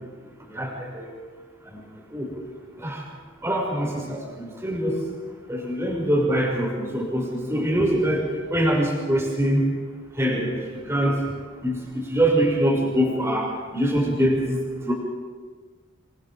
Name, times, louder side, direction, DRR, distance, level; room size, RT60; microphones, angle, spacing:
voice 1, 0.5-1.1 1.7-1.8 2.1-2.3 2.8-3.0 3.4-5.0 5.5-8.2 8.5-9.6 10.2-10.5 10.8-11.2 11.6-14.9, right 1 dB, 15° right, -2 dB, 5.7 m, -24 dB
29.0 x 22.0 x 5.1 m, 1.5 s
head